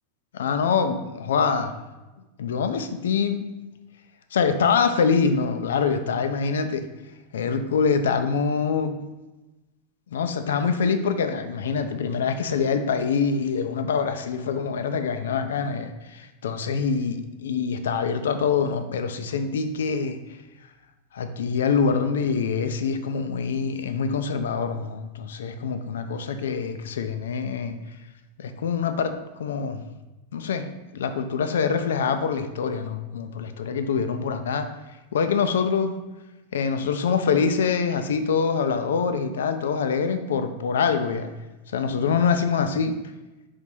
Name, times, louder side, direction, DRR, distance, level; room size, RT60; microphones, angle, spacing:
voice 1, 0.3-1.7 2.4-3.5 4.3-6.9 7.3-9.0 10.1-20.2 21.1-27.8 28.4-29.8 30.3-30.7 30.9-34.7 35.1-35.9 36.5-41.3 41.7-43.0, left 5 dB, 60° left, 8 dB, 0.4 m, -25 dB
5.2 x 3.9 x 4.8 m, 1.1 s
figure-of-eight pair, 90°, 0 cm